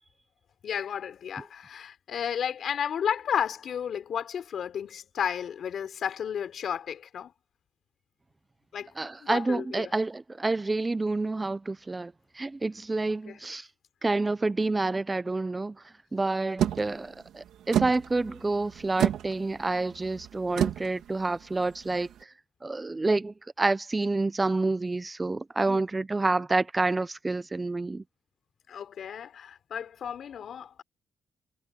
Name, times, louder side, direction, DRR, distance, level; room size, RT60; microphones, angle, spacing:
voice 1, 0.6-7.3 8.7-8.9 9.2-9.9 13.1-13.4 16.6-16.7 25.7-25.8 28.7-30.8, left 8 dB, 60° left, 3.7 m, -33 dB
voice 2, 9.0-13.7 14.0-15.8 16.1-22.1 22.6-28.0, right 3 dB, 20° right, 0.6 m, -28 dB
sound 1, 16.6-22.2, right 10 dB, 80° right, 2.4 m, -31 dB
cardioid pair, 90°, 0 cm